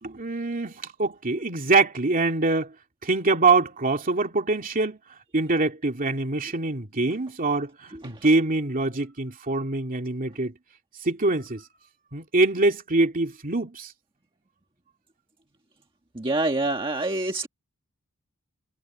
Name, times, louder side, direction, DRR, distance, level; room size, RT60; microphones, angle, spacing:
voice 1, 0.0-2.7 3.0-5.0 5.3-10.5 11.0-11.7 12.1-13.9, right 3 dB, 40° right, 2.6 m, -24 dB
voice 2, 16.1-17.5, right 2 dB, 25° right, 1.5 m, -26 dB
head